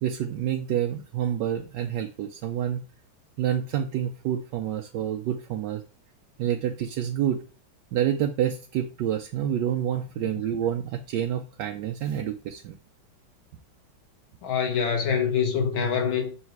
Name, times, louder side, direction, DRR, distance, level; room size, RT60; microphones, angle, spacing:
voice 1, 0.0-2.8 3.4-5.8 6.4-7.4 7.9-12.8, right 10 dB, 75° right, 1.1 m, -28 dB
voice 2, 14.4-16.3, left 6 dB, 80° left, 2.0 m, -25 dB
6.3 x 3.2 x 4.6 m
omnidirectional pair, 2.2 m